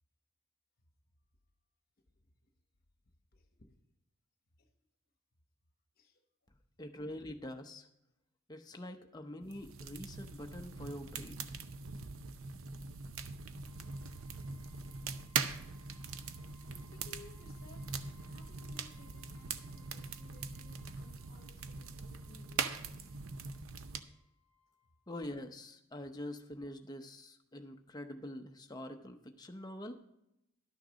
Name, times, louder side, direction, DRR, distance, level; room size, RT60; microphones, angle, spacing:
voice 1, 3.3-3.7 4.6-4.7 5.9-6.2 16.7-23.2, left 3 dB, 45° left, 5 dB, 1.1 m, -60 dB
voice 2, 6.8-7.9 8.5-11.5 25.1-29.9, left 1 dB, 20° left, 5 dB, 0.7 m, -45 dB
sound 1, 9.5-24.0, right 5 dB, 70° right, 0.6 m, -42 dB
sound 2, 13.6-25.1, left 5 dB, 85° right, 2.7 m, -69 dB
12.0 x 6.5 x 5.1 m, 0.84 s
head